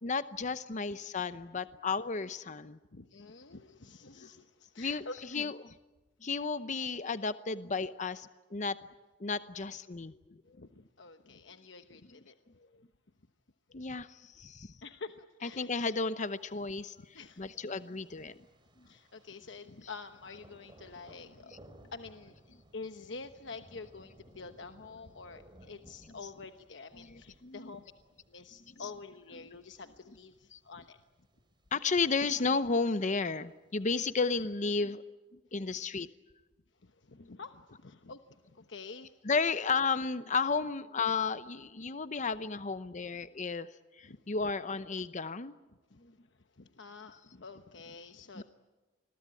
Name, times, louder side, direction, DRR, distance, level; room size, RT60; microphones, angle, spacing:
voice 1, 0.0-2.8 4.2-4.3 4.8-5.7 6.2-8.7 9.2-10.2 12.6-12.7 13.7-14.7 15.4-18.4 18.8-18.9 19.8-19.9 26.1-26.3 26.9-27.8 28.7-28.9 29.3-29.5 30.5-30.6 31.7-35.0 35.5-36.1 37.2-37.3 39.2-43.7 44.0-45.5 46.0-46.1 48.3-48.4, left 4 dB, 40° left, 13 dB, 0.8 m, -33 dB
voice 2, 2.9-5.5 10.3-12.4 14.8-15.7 17.0-17.7 18.8-21.5 21.9-22.4 22.7-27.9 28.3-31.0 35.7-35.8 36.8-39.1 44.0-44.5 45.9-48.4, left 4 dB, 75° left, 8 dB, 1.1 m, -48 dB
Thunder, 16.3-34.2, right 1 dB, 25° right, 3.6 m, -61 dB
28.0 x 22.0 x 9.0 m, 1.2 s
head